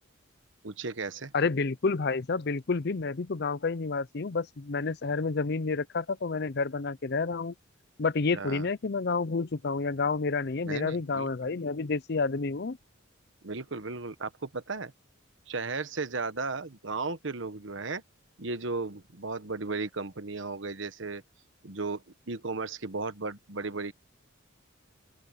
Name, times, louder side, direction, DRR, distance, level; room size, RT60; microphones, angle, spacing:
voice 1, 0.6-1.3 8.3-8.7 10.6-11.5 13.4-14.9 15.5-18.0 18.4-21.2 21.6-23.9, right 3 dB, 65° right, 1.2 m, -35 dB
voice 2, 1.3-7.5 8.0-12.8, left 4 dB, 55° left, 0.6 m, -29 dB
open air
head